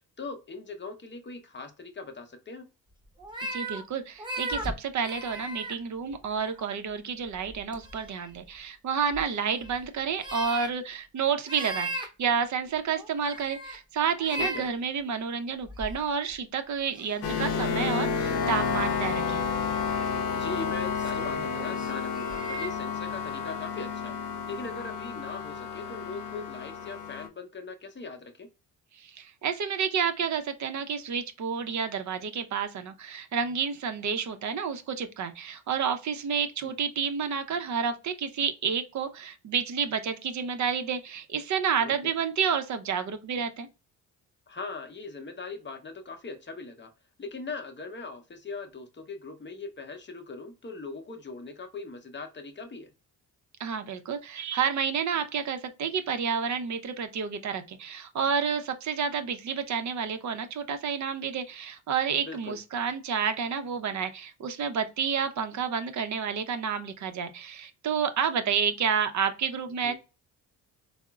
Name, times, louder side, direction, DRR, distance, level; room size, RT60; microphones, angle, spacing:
voice 1, 0.2-2.7 14.3-14.7 20.3-24.1 24.5-28.5 36.6-36.7 41.8-41.9 44.5-46.9 47.2-52.9 62.3-62.6 69.8-69.9, left 3 dB, 25° left, 0.7 m, -40 dB
sound 1, 3.2-3.8 4.2-5.7 6.1-6.6 7.5-8.3 9.1-9.7 10.1-10.7 11.5-12.1 12.9-13.8 14.2-14.7 15.7-16.3 16.9-17.1 17.8-18.0 19.6-20.1 20.6-22.7, right 1 dB, 10° right, 0.9 m, -37 dB
voice 2, 3.5-19.5 28.9-43.7 53.6-69.9, right 6 dB, 45° right, 0.5 m, -30 dB
sound 2, 17.2-27.3, left 6 dB, 65° left, 0.6 m, -31 dB
3.6 x 2.0 x 2.3 m
supercardioid pair, 60°, 43 cm